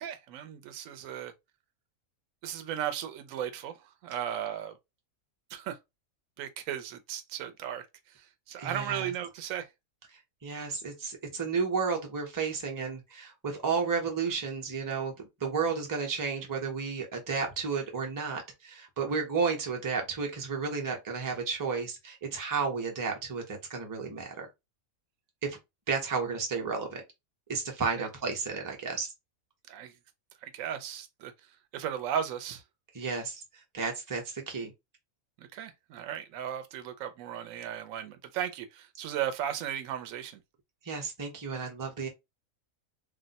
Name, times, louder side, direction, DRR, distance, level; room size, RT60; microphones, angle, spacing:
voice 1, 0.0-1.3 2.4-3.7 4.0-4.7 5.5-5.8 6.4-9.7 28.0-28.1 29.7-29.9 30.4-31.3 31.7-32.6 35.4-40.4, right 9 dB, 75° right, 1.0 m, -36 dB
voice 2, 8.6-9.1 10.4-15.1 15.4-24.5 25.4-25.6 25.9-27.0 27.5-29.1 32.9-33.4 33.7-34.7 40.8-42.1, right 5 dB, 20° right, 0.6 m, -32 dB
2.5 x 2.1 x 3.9 m
omnidirectional pair, 1.5 m